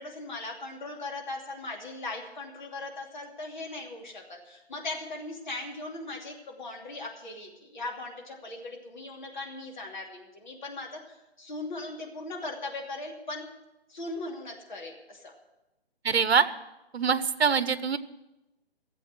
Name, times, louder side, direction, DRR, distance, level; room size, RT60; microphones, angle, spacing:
voice 1, 0.0-13.4 13.9-15.3, left 2 dB, 45° left, 1 dB, 2.8 m, -39 dB
voice 2, 16.0-16.4 16.9-18.0, right 6 dB, 70° right, 14 dB, 1.0 m, -24 dB
15.0 x 7.8 x 8.1 m, 0.97 s
hypercardioid pair, 170°, 32 cm